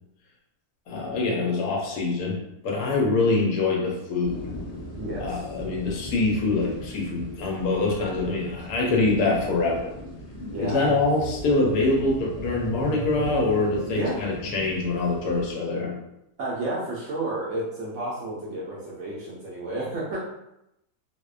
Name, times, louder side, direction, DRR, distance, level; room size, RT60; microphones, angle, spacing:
voice 1, 0.9-2.4 2.6-4.4 5.2-9.9 10.6-15.9, left 3 dB, 80° left, -1 dB, 1.1 m, -24 dB
sound 1, 4.2-15.5, left 1 dB, 40° left, 0.6 m, -40 dB
voice 2, 5.0-5.4 8.8-9.4 10.5-10.9 13.9-14.2 16.4-20.2, right 2 dB, 70° right, -5 dB, 0.7 m, -32 dB
sound 2, 10.1-14.9, right 1 dB, 35° right, 0.4 m, -37 dB
2.7 x 2.1 x 2.3 m, 0.85 s
omnidirectional pair, 1.7 m